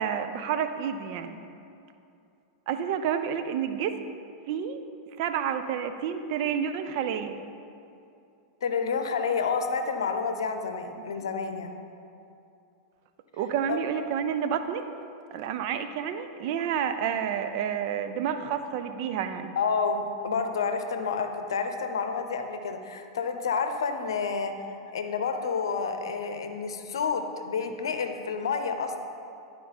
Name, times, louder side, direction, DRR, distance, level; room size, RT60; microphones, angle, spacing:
voice 1, 0.0-1.4 2.7-4.0 4.5-4.8 5.2-7.4 13.4-14.8 15.3-19.5, right 8 dB, 55° right, 9 dB, 0.5 m, -29 dB
voice 2, 8.6-11.7 13.7-13.8 19.6-24.5 24.9-29.0, left 5 dB, 75° left, 6 dB, 0.7 m, -29 dB
11.5 x 4.7 x 4.1 m, 2.6 s
hypercardioid pair, 95°, 2 cm